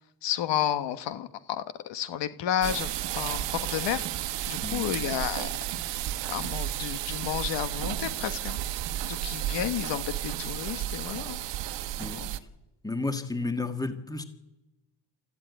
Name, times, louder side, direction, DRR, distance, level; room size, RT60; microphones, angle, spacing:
voice 1, 0.2-4.1 4.5-5.5 6.3-8.6 9.1-11.4 12.1-12.3, left 11 dB, 80° left, 11 dB, 1.4 m, -31 dB
sound 1, 2.6-12.4, right 12 dB, 90° right, 1.3 m, -33 dB
voice 2, 12.8-14.2, left 3 dB, 10° left, 8 dB, 1.7 m, -32 dB
28.0 x 14.0 x 9.3 m, 1.0 s
cardioid pair, 130°, 42 cm